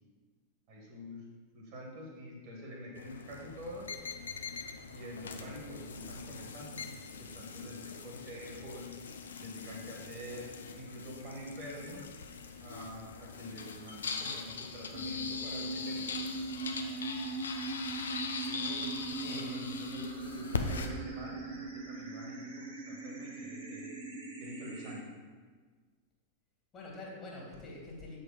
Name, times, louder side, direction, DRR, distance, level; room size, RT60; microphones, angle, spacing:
voice 1, 0.7-1.2 1.5-3.9 4.9-8.9 9.4-10.5 10.8-12.1 12.6-16.1 19.2-19.4 19.7-23.9 24.4-25.1, equal, 45° right, -1 dB, 1.7 m, -46 dB
sound 1, 3.0-20.9, left 5 dB, 70° left, 0.6 m, -41 dB
sound 2, 14.9-24.9, right 3 dB, 65° right, 1.8 m, -40 dB
voice 2, 18.5-18.9 19.2-19.8 26.7-28.2, left 2 dB, 25° left, -3 dB, 2.3 m, -46 dB
7.6 x 4.3 x 5.0 m, 1.5 s
figure-of-eight pair, 90°, 0 cm